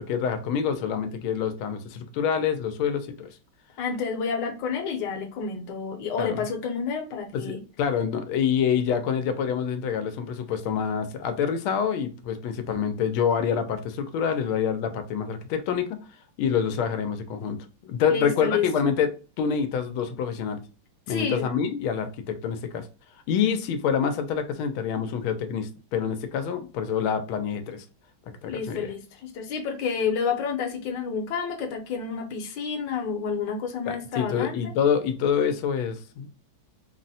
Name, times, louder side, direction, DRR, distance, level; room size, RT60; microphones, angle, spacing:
voice 1, 0.1-3.3 6.2-6.4 7.3-16.0 16.4-17.6 17.8-19.1 19.4-20.6 21.1-22.9 23.3-27.8 28.4-28.9 33.9-36.3, left 7 dB, 90° left, 1.4 m, -26 dB
voice 2, 3.8-7.6 18.1-18.7 21.1-21.5 28.5-34.7, left 6 dB, 70° left, 1.3 m, -29 dB
4.0 x 2.0 x 2.6 m
omnidirectional pair, 2.2 m